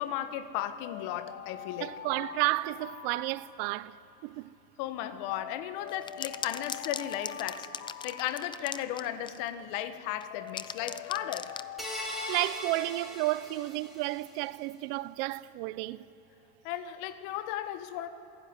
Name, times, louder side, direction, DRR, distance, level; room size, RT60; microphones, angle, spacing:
voice 1, 0.0-1.9 4.8-7.7 8.0-11.6 16.6-18.1, left 11 dB, 65° left, 1.5 m, -35 dB
Alarm, 0.8-4.1 5.3-9.1 10.3-13.6, left 10 dB, 45° left, 1.1 m, -45 dB
voice 2, 1.8-4.5 12.3-16.1, right 19 dB, 65° right, 0.7 m, -32 dB
sound 1, 5.9-9.5 10.2-11.7, left 7 dB, 15° left, 0.5 m, -39 dB
sound 2, 11.8-14.3, equal, ahead, 4.6 m, -40 dB
27.0 x 17.0 x 9.7 m
supercardioid pair, 145°, 31 cm